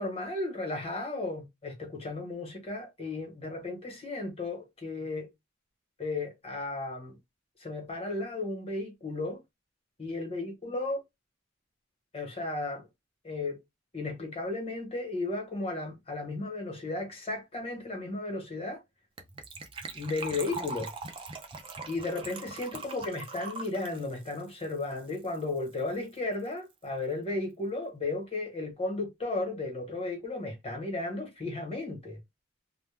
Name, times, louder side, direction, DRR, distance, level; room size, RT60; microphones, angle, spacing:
voice 1, 0.0-5.3 6.0-7.2 7.6-9.4 10.0-11.0 12.1-12.8 13.2-13.6 13.9-18.8 19.9-20.9 21.9-32.2, left 2 dB, 30° left, 1.0 m, -34 dB
Gurgling / Trickle dribble / Fill (with liquid), 19.2-25.4 25.7-25.8 25.9-26.2 26.5-26.6, right 3 dB, 25° right, 0.4 m, -41 dB
2.2 x 2.1 x 3.2 m
head